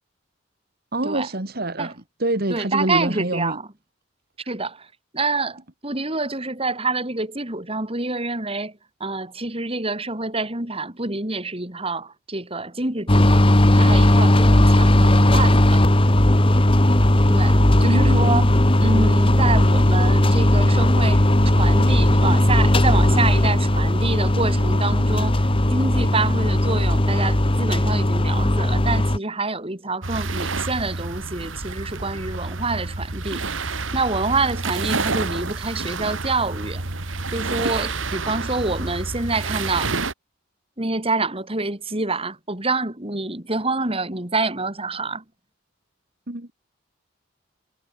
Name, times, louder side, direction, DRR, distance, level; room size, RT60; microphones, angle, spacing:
voice 1, 0.9-1.9 2.2-3.6 17.8-18.4 46.3-46.5, right 1 dB, 50° right, 2.4 m, -25 dB
voice 2, 2.5-3.7 4.5-13.4 13.7-15.8 17.3-18.5 18.8-36.8 37.3-39.9 40.8-45.2, right 3 dB, 30° right, 3.9 m, -27 dB
sound 1, 13.1-29.2, left 1 dB, 25° left, 1.7 m, -17 dB
sound 2, 30.0-40.1, right 3 dB, 75° right, 2.3 m, -28 dB
head